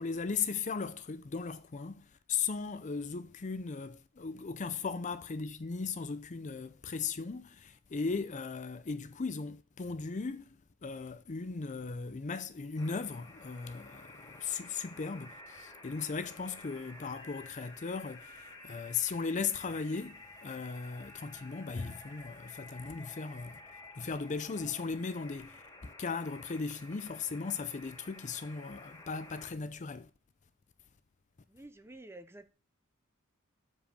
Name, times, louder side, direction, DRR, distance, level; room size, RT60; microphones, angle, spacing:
voice 1, 0.0-10.5 10.8-23.6 24.0-30.1, left 5 dB, 35° left, 0.5 m, -37 dB
sound 1, 12.8-29.5, left 2 dB, 20° left, 2.0 m, -52 dB
voice 2, 31.5-32.5, right 2 dB, 10° right, 0.7 m, -50 dB
7.3 x 5.0 x 5.1 m
head